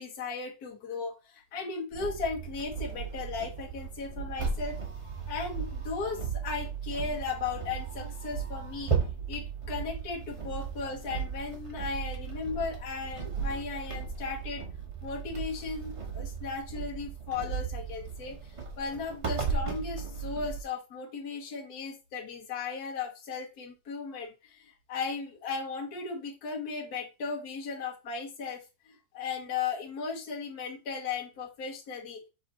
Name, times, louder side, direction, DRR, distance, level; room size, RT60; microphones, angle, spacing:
voice 1, 0.0-4.8 5.3-8.9 9.3-14.6 15.0-18.4 18.8-32.2, left 5 dB, 60° left, -1 dB, 1.6 m, -36 dB
sound 1, 1.9-20.6, right 6 dB, 50° right, 0.3 m, -36 dB
5.3 x 3.4 x 2.9 m, 0.28 s
omnidirectional pair, 1.9 m